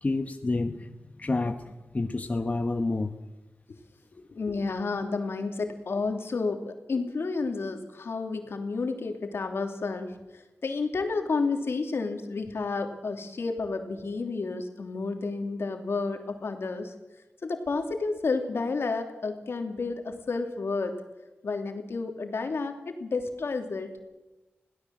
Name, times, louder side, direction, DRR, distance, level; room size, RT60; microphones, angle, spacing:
voice 1, 0.0-3.1 4.2-4.3, left 3 dB, 35° left, 7 dB, 1.1 m, -29 dB
voice 2, 4.3-16.9 17.4-21.0 21.4-23.9, left 4 dB, 80° left, 4 dB, 2.9 m, -31 dB
22.0 x 16.5 x 7.7 m, 1.0 s
wide cardioid pair, 115°, 4 cm